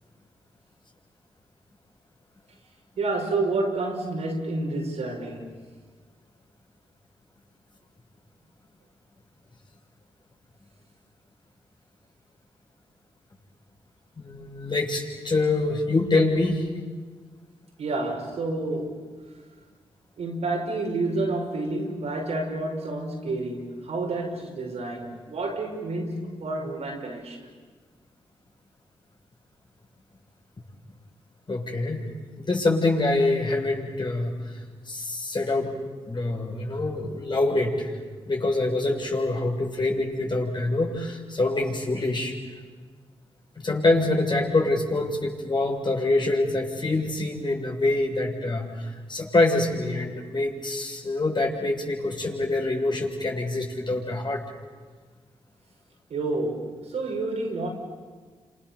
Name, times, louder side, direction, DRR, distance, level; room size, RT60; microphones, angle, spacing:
voice 1, 3.0-5.5 17.8-19.2 20.2-27.5 56.1-57.7, right 2 dB, 75° right, 6.0 m, -29 dB
voice 2, 14.2-16.7 31.5-32.0 32.4-34.3 34.9-35.7 36.1-37.9 38.3-42.4 43.6-54.4, left 2 dB, 45° left, 7.3 m, -25 dB
30.0 x 27.0 x 7.2 m
supercardioid pair, 40°, 11 cm